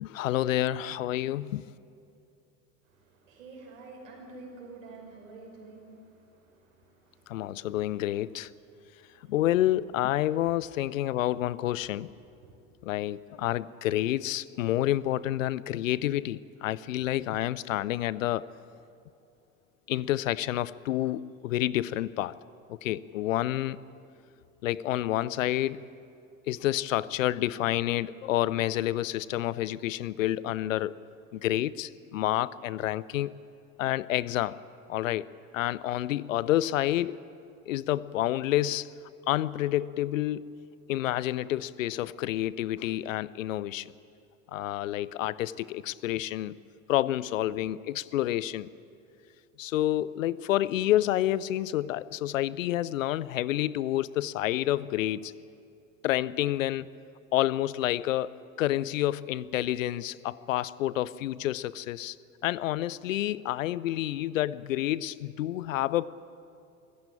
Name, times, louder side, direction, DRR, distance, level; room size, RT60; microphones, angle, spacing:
voice 1, 0.0-1.6 7.3-8.5 9.3-12.1 12.8-18.5 19.9-22.3 22.7-23.8 24.6-25.8 26.5-30.9 31.3-33.4 33.8-34.6 34.9-35.3 35.5-37.2 37.7-38.9 39.3-40.4 40.9-43.9 44.5-46.5 46.9-48.7 49.6-55.3 56.0-56.9 57.3-62.2 62.4-66.1, left 14 dB, 70° left, 20 dB, 0.6 m, -29 dB
voice 2, 2.8-7.7 8.9-9.4 10.3-10.6 12.4-12.6, right 3 dB, 70° right, 0 dB, 5.7 m, -49 dB
24.5 x 15.0 x 8.7 m, 2.6 s
figure-of-eight pair, 70°, 41 cm